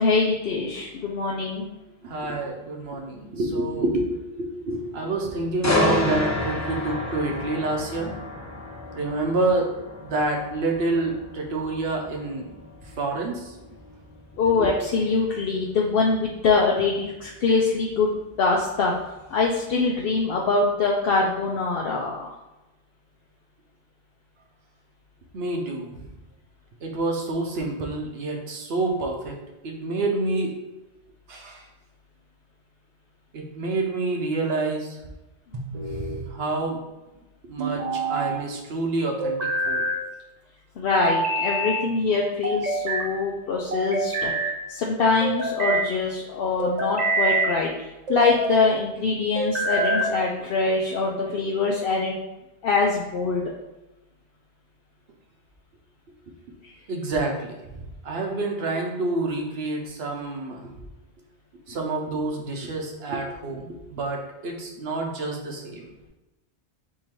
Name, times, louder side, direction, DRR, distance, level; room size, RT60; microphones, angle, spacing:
voice 1, 0.0-1.7 14.4-18.9 19.3-22.3 40.8-44.3 44.7-47.7 48.1-52.2 52.6-53.4 56.6-56.7, left 4 dB, 65° left, -2 dB, 0.7 m, -23 dB
voice 2, 2.0-8.1 8.9-9.7 10.0-12.5 13.0-13.5 14.6-14.7 25.3-26.1 26.8-29.4 29.6-30.5 31.3-31.7 33.3-35.0 35.9-36.8 37.4-39.9 56.9-60.7 61.7-65.9, right 2 dB, 65° right, 2 dB, 1.0 m, -28 dB
sound 1, 5.6-19.5 19.9-20.1, left 2 dB, 30° left, 0.3 m, -31 dB
sound 2, 35.5-36.2 37.6-38.4 39.2-40.0 41.0-41.8 42.4-43.1 43.7-44.6 45.2-45.9 46.6-47.5 48.1-48.6 49.4-50.2, right 2 dB, 45° right, 0.7 m, -26 dB
3.7 x 2.8 x 4.4 m, 1.0 s
omnidirectional pair, 1.1 m